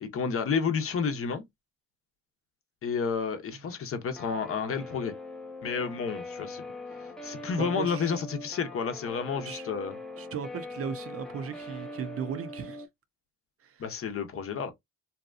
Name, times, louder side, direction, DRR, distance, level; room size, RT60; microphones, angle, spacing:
voice 1, 0.0-1.4 2.8-5.2 5.6-6.6 7.2-9.9 13.8-14.7, left 6 dB, 45° left, 0.7 m, -30 dB
Guitar, 4.2-12.9, left 2 dB, ahead, 0.6 m, -42 dB
voice 2, 7.6-8.1 9.4-9.7 10.2-12.9 13.6-13.8, right 7 dB, 50° right, 0.5 m, -37 dB
2.7 x 2.3 x 2.4 m
cardioid pair, 90°, 30 cm